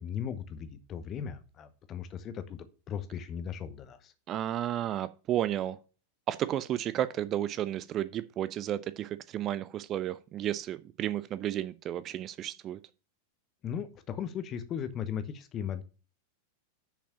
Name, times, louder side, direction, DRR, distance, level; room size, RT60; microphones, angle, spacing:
voice 1, 0.0-4.1 13.6-15.8, left 8 dB, 30° left, 1.0 m, -37 dB
voice 2, 4.3-5.8 6.3-12.8, right 12 dB, 30° right, 0.5 m, -32 dB
6.7 x 5.1 x 6.9 m
figure-of-eight pair, 90°, 0 cm